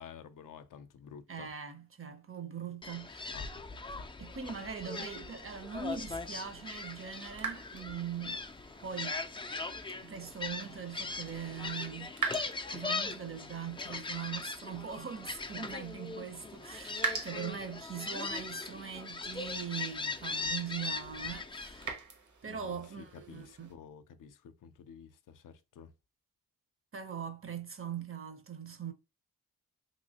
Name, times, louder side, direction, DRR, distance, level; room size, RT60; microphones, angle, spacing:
voice 1, 0.0-1.5 3.3-3.6 22.5-25.9, left 7 dB, 70° left, 0.5 m, -51 dB
voice 2, 1.3-3.4 4.2-8.4 8.8-9.2 10.0-12.1 12.7-22.0 22.4-23.7 26.9-28.9, right 7 dB, 40° right, 0.7 m, -41 dB
Gull seagull, 2.8-21.9, left 3 dB, 15° left, 0.3 m, -40 dB
sound 1, 5.9-23.7, right 5 dB, 60° right, 1.0 m, -45 dB
3.0 x 2.8 x 2.7 m
cardioid pair, 75°, 34 cm